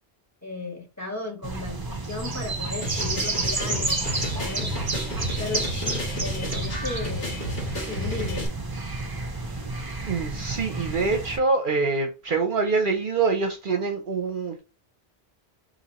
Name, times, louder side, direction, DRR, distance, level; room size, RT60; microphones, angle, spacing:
voice 1, 0.4-4.7 5.2-7.4 7.9-8.5, left 3 dB, 15° left, 1.5 m, -35 dB
sound 1, 1.4-11.4, right 3 dB, 30° right, 0.5 m, -30 dB
sound 2, 2.8-8.5, equal, 65° left, 1.6 m, -32 dB
voice 2, 10.1-14.6, right 4 dB, 55° right, 0.8 m, -25 dB
4.2 x 2.9 x 4.0 m
omnidirectional pair, 1.1 m